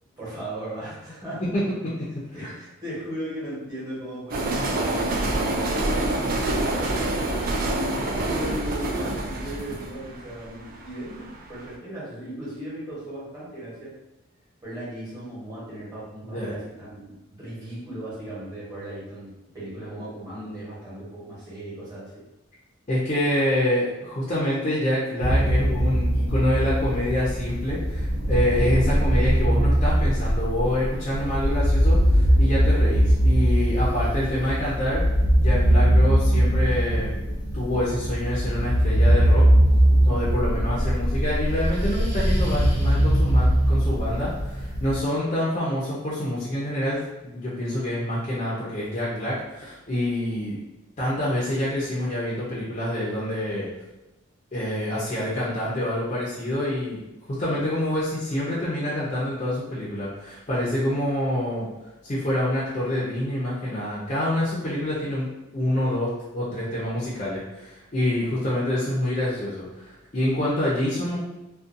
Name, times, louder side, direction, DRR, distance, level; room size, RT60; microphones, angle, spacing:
voice 1, 0.2-1.4 2.3-7.5 8.0-13.9 14.6-22.2, right 1 dB, 15° right, -9 dB, 1.0 m, -37 dB
sound 1, 4.3-11.3, right 2 dB, 40° right, 0.3 m, -26 dB
voice 2, 22.9-35.0 35.4-37.1 37.5-39.5 40.0-50.6 51.0-53.7 54.5-57.0 57.3-61.7 62.0-71.2, left 1 dB, 30° left, -8 dB, 0.5 m, -26 dB
sound 2, 25.2-45.0, equal, 75° right, 0.9 m, -21 dB
2.5 x 2.2 x 2.5 m, 0.98 s
head